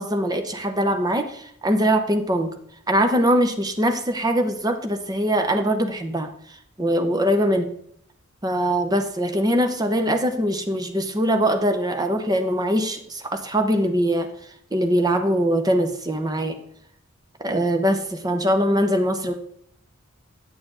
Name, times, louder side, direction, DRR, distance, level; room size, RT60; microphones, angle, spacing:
voice 1, 0.0-2.5 2.9-7.7 8.4-14.3 14.7-16.6 17.4-19.3, equal, 20° right, 6 dB, 0.8 m, -22 dB
9.2 x 6.9 x 3.8 m, 0.69 s
head